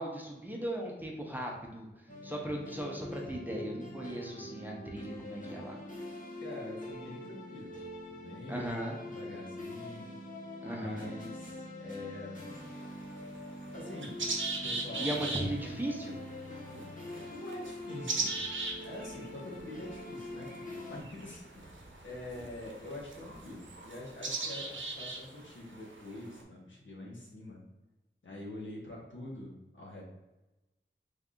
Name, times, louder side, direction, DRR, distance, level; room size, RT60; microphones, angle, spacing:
voice 1, 0.0-1.9 2.2-5.8 8.5-9.0 10.6-11.1 15.0-16.2, right 1 dB, 10° right, -1 dB, 0.7 m, -37 dB
sound 1, 2.1-21.0, left 1 dB, 40° left, 0.9 m, -44 dB
voice 2, 6.4-8.7 9.1-10.1 10.6-12.5 13.7-14.2 14.6-15.1 15.6-15.8 17.3-18.4 18.8-20.5 20.9-21.8 22.0-27.6 28.2-30.0, left 1 dB, 70° left, -3 dB, 1.2 m, -45 dB
sound 2, 12.5-26.4, right 3 dB, 70° right, 0.7 m, -40 dB
3.4 x 2.6 x 3.6 m, 1.0 s
wide cardioid pair, 65°, 21 cm